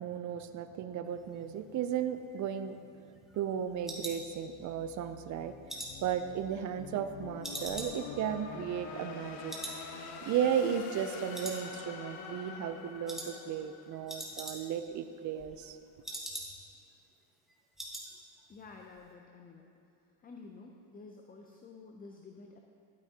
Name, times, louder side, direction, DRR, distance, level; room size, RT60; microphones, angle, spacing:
voice 1, 0.0-2.8 3.3-5.6 6.0-9.6 10.2-15.8, right 8 dB, 40° right, 10 dB, 0.4 m, -35 dB
sound 1, 2.2-4.9 5.3-7.1 7.4-9.2 9.5-9.8 10.1-10.2 10.7-11.1 11.3-12.1 12.4-12.7 13.1-13.3 13.6-13.7 13.9-14.9 15.2-16.8 17.1-17.2 17.5-18.1 18.4-18.6 18.9-19.0, right 1 dB, ahead, 1.2 m, -44 dB
sound 2, 3.5-14.6, left 5 dB, 70° left, 1.0 m, -46 dB
voice 2, 18.5-19.8 20.2-22.6, left 4 dB, 20° left, 2 dB, 0.4 m, -51 dB
11.5 x 9.5 x 2.8 m, 2.6 s
cardioid pair, 130°, 50 cm